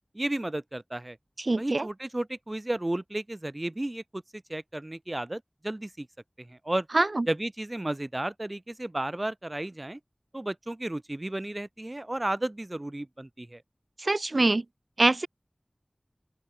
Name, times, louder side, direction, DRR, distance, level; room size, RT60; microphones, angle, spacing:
voice 1, 0.1-1.2 1.6-6.1 6.4-6.9 7.3-10.0 10.3-13.6, right 1 dB, 40° right, 2.1 m, -33 dB
voice 2, 1.5-1.9 6.9-7.2 14.0-14.6 15.0-15.3, right 2 dB, 75° right, 2.3 m, -24 dB
open air
wide cardioid pair, 45°, 0 cm